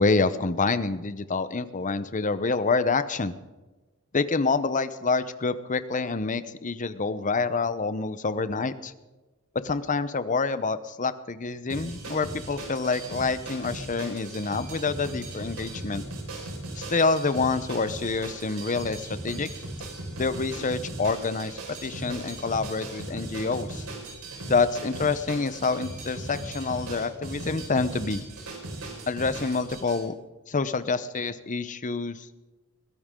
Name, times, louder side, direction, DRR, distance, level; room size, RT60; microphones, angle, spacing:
voice 1, 0.0-3.3 4.1-8.9 9.5-16.0 16.8-19.5 20.2-23.8 24.5-28.2 29.1-30.1 30.5-32.3, left 4 dB, 35° left, 13 dB, 0.8 m, -27 dB
sound 1, 11.7-30.0, right 2 dB, 85° right, 5.1 m, -38 dB
22.0 x 16.5 x 3.8 m, 1.2 s
head